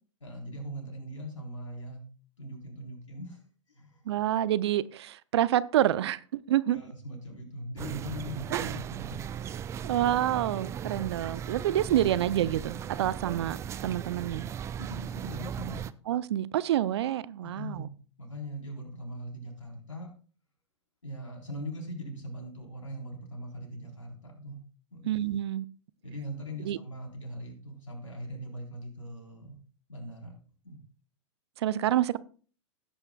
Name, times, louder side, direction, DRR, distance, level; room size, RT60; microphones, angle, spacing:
voice 1, 0.2-2.1 2.4-3.4 3.7-4.0 6.7-9.3 14.8-15.8 17.4-17.9 18.2-20.1 21.0-24.6 24.9-25.1 26.0-29.6 29.9-30.3 30.6-30.8, equal, 85° left, 3.8 m, -41 dB
voice 2, 4.1-6.8 8.5-8.8 9.8-13.6 13.8-14.5 16.1-17.9 25.0-25.6 26.6-26.8 31.6-32.2, right 12 dB, 60° right, 0.6 m, -28 dB
sound 1, 7.8-15.9, right 8 dB, 20° right, 0.4 m, -37 dB
16.5 x 8.7 x 2.3 m
figure-of-eight pair, 105°, 16 cm